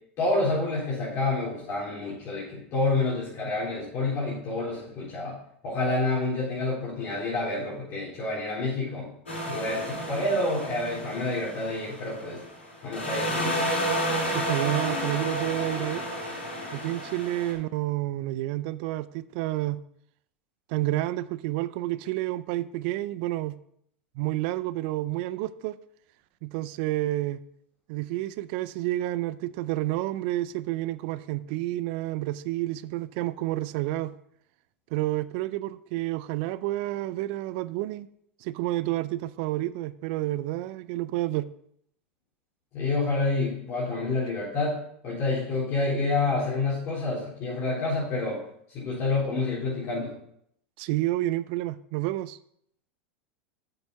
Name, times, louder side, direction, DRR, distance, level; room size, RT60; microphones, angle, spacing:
voice 1, 0.2-5.4 5.6-9.1 9.5-12.4 12.8-13.6 42.7-48.4 48.7-50.1, left 2 dB, 45° left, 4.0 m, -28 dB
sound 1, 9.3-12.6 12.9-17.5, equal, 90° left, 3.9 m, -31 dB
voice 2, 14.3-16.0 16.7-19.8 20.7-23.6 24.2-25.8 26.4-27.4 27.9-34.1 34.9-38.1 38.4-41.5 50.8-52.4, right 16 dB, 60° right, 0.5 m, -29 dB
7.8 x 7.2 x 5.3 m
hypercardioid pair, 95°, 6 cm